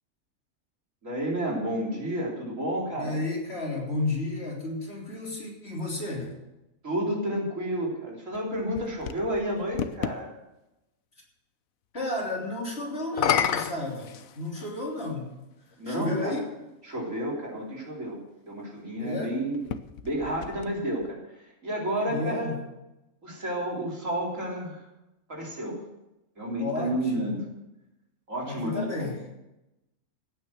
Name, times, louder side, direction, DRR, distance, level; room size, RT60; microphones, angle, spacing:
voice 1, 1.0-3.2 6.8-10.3 15.8-16.4 16.8-18.2 18.4-19.6 20.0-22.5 23.2-24.8 25.3-25.8 26.4-27.5 28.3-29.1, right 1 dB, 60° right, -3 dB, 4.2 m, -31 dB
voice 2, 2.9-6.4 11.9-15.4 15.8-16.4 19.0-19.4 22.0-22.6 26.6-27.4 28.5-29.3, left 2 dB, 45° left, -2 dB, 3.7 m, -32 dB
sound 1, 8.3-10.2 13.0-14.8 15.7-15.8 19.5-21.1, left 8 dB, 75° left, 1.2 m, -31 dB
16.5 x 9.3 x 6.4 m, 0.95 s
omnidirectional pair, 1.5 m